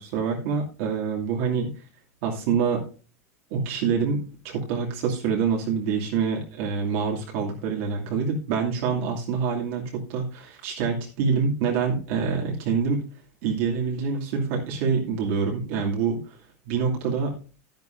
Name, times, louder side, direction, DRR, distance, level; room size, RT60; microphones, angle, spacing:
voice 1, 0.0-1.7 2.2-2.9 3.5-13.0 13.4-16.4 16.7-17.3, right 5 dB, 55° right, -1 dB, 2.6 m, -26 dB
11.5 x 10.5 x 2.6 m, 0.34 s
supercardioid pair, 165°, 8 cm